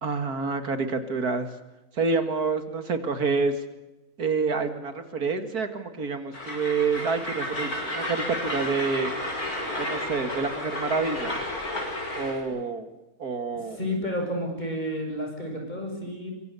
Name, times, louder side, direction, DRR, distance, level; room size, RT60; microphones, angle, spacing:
voice 1, 0.0-1.5 1.9-3.6 4.2-9.1 9.8-11.4 12.1-12.9 13.2-13.8, right 4 dB, 75° right, 9 dB, 2.5 m, -28 dB
Train, 6.3-12.4, left 1 dB, 70° left, 6.6 m, -32 dB
voice 2, 13.6-16.3, equal, 30° left, 2 dB, 7.5 m, -31 dB
26.0 x 24.0 x 6.9 m, 1.0 s
omnidirectional pair, 1.6 m